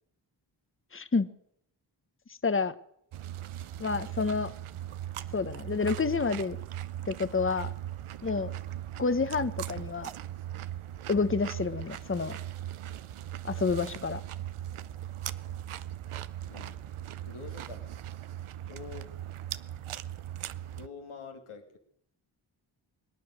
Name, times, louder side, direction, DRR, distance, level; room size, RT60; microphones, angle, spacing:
voice 1, 0.9-1.3 2.4-2.7 3.8-4.5 5.3-6.6 7.1-7.7 8.2-8.5 9.0-10.1 11.1-12.4 13.4-14.2, left 4 dB, 25° left, 12 dB, 1.1 m, -29 dB
sound 1, 3.1-20.9, right 12 dB, 85° right, 0.7 m, -39 dB
voice 2, 17.2-17.9 18.7-19.1 20.7-21.8, left 5 dB, 90° left, 4 dB, 2.5 m, -46 dB
24.0 x 9.4 x 6.4 m, 0.71 s
cardioid pair, 40°, 48 cm